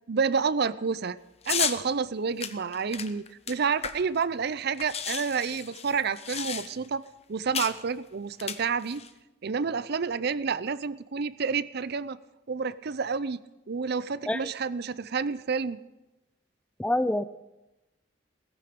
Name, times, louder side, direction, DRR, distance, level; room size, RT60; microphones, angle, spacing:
voice 1, 0.1-1.2 1.5-7.0 7.3-9.0 9.4-12.2 12.5-13.4 13.7-15.8, right 5 dB, 60° right, 16 dB, 0.6 m, -29 dB
sound 1, 1.4-1.8 2.4-4.2 4.5-4.6 4.8-6.9 7.5-7.8 8.3-9.1, left 7 dB, 35° left, 0.9 m, -33 dB
voice 2, 16.8-17.3, left 1 dB, 5° left, 14 dB, 0.4 m, -26 dB
18.5 x 14.5 x 5.2 m, 1.0 s
head